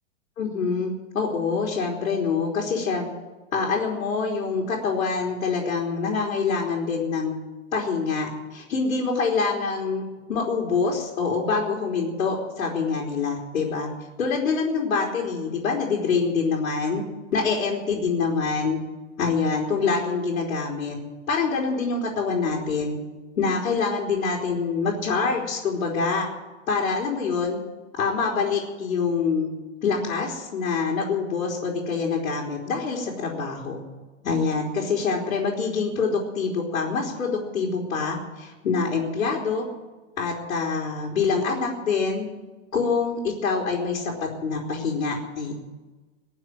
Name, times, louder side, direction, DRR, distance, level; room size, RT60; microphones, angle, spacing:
voice 1, 0.4-3.1 3.5-7.3 7.7-13.9 14.2-17.0 17.3-18.8 19.2-21.0 21.3-23.0 23.4-26.3 26.7-27.6 28.0-29.5 29.8-33.8 34.2-39.6 40.2-42.3 42.7-45.5, left 5 dB, 85° left, -2 dB, 3.7 m, -25 dB
20.5 x 7.3 x 9.4 m, 1.2 s
supercardioid pair, 175°, 40 cm